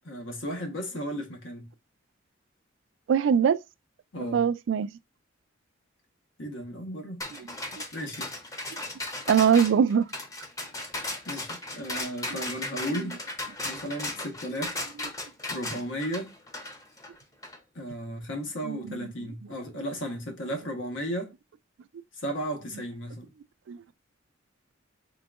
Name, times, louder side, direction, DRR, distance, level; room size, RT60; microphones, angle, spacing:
voice 1, 0.0-1.7 4.1-4.5 6.4-7.2 7.9-8.3 11.3-13.2 13.6-14.8 15.5-16.3 17.7-21.3 22.1-23.3, equal, 90° left, 1.1 m, -35 dB
voice 2, 3.1-3.6 4.3-4.9 7.7-7.8 9.3-10.1 18.6-19.0 23.7-23.8, right 7 dB, 80° right, 0.3 m, -22 dB
sound 1, 7.2-17.6, left 2 dB, 20° left, 0.6 m, -36 dB
3.8 x 3.4 x 2.3 m
head